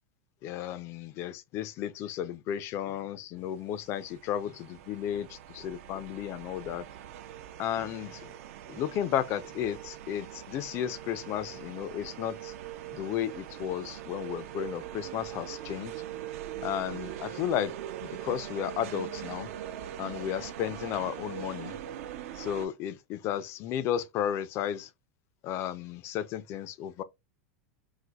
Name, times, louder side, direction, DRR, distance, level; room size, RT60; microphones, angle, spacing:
voice 1, 0.4-6.8 7.6-8.3 8.7-12.5 12.9-15.9 16.6-17.7 18.0-19.5 20.0-21.7 22.4-24.9 25.4-27.0, left 10 dB, 35° left, 0.3 m, -33 dB
sound 1, 3.7-22.7, right 11 dB, 65° right, 0.5 m, -42 dB
4.0 x 2.5 x 2.2 m
supercardioid pair, 150°, 8 cm